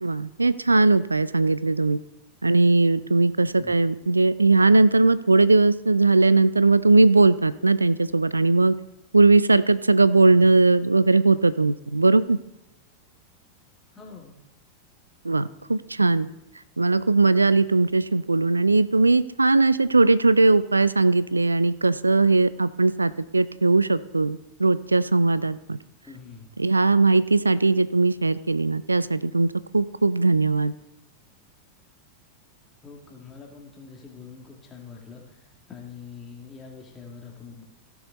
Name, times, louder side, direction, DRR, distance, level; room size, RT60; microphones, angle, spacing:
voice 1, 0.0-2.0 2.4-8.7 9.1-12.4 15.2-16.3 16.8-25.8 26.6-30.7, right 3 dB, 80° right, 17 dB, 0.3 m, -19 dB
voice 2, 13.9-14.4 26.0-26.5 32.8-37.6, left 5 dB, 20° left, 0 dB, 2.3 m, -44 dB
15.5 x 7.0 x 4.1 m, 0.88 s
figure-of-eight pair, 90°, 0 cm